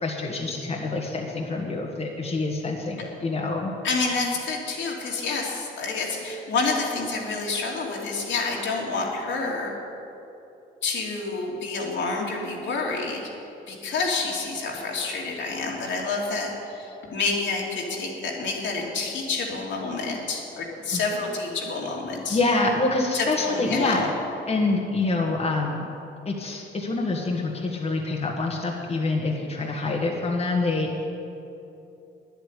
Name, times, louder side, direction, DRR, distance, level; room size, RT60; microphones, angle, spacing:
voice 1, 0.0-3.7 20.9-21.1 22.3-24.0 24.5-25.8 26.2-30.9, left 3 dB, 30° left, -1 dB, 1.5 m, -26 dB
voice 2, 3.8-9.8 10.8-13.2 13.7-22.4 23.1-24.1, left 3 dB, 70° left, -2 dB, 2.7 m, -28 dB
10.5 x 8.3 x 9.9 m, 2.8 s
cardioid pair, 90°, 20 cm